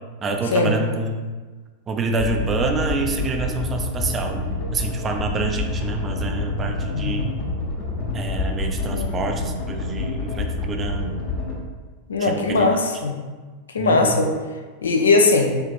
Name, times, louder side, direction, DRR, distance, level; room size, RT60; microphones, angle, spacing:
voice 1, 0.2-1.2 1.9-7.3 8.1-11.1 12.2-12.7 13.8-14.2, right 3 dB, 25° right, 3 dB, 0.4 m, -27 dB
sound 1, 2.2-11.6, left 3 dB, 40° left, 0.8 m, -27 dB
voice 2, 6.9-7.2 8.9-9.1 12.1-13.1 13.7-14.3 14.8-15.6, left 3 dB, 70° left, 4 dB, 0.4 m, -19 dB
6.8 x 2.5 x 2.3 m, 1.4 s
figure-of-eight pair, 90°, 0 cm